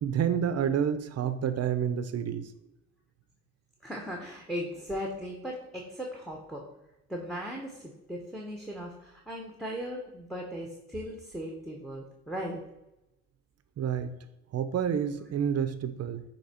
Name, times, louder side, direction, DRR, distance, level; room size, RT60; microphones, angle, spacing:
voice 1, 0.0-2.5 13.8-14.1 14.5-16.2, right 8 dB, 55° right, 11 dB, 0.7 m, -29 dB
voice 2, 3.8-6.7 7.1-12.6, equal, ahead, 0 dB, 1.0 m, -38 dB
8.1 x 3.0 x 4.3 m, 0.93 s
cardioid pair, 90°, 30 cm